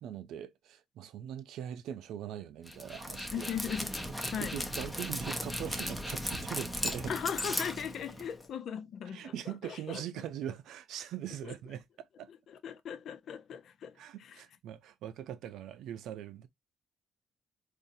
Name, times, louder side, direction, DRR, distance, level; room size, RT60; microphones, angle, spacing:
voice 1, 0.0-3.5 4.4-7.1 9.1-12.3 14.0-16.5, right 10 dB, 85° right, 0.5 m, -41 dB
Dog, 2.7-8.5, equal, 5° left, 0.7 m, -37 dB
voice 2, 3.3-4.0 4.3-4.6 7.1-10.0 11.4-11.5 12.3-14.4, left 8 dB, 65° left, 0.6 m, -39 dB
3.9 x 2.6 x 2.6 m
cardioid pair, 90°, 0 cm